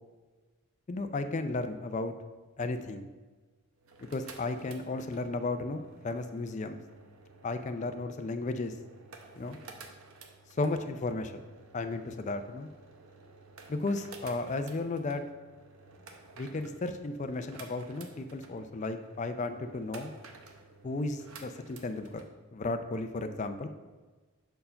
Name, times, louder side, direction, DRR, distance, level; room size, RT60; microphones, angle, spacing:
voice 1, 0.9-2.1 2.6-3.0 4.1-6.8 7.4-8.7 9.3-9.6 10.6-11.3 11.7-12.7 13.7-15.2 16.4-20.1 20.8-22.2 22.5-23.7, left 3 dB, 35° left, 8 dB, 0.4 m, -34 dB
sound 1, 3.8-22.3, right 3 dB, 70° right, 0.7 m, -53 dB
5.6 x 4.5 x 5.2 m, 1.3 s
head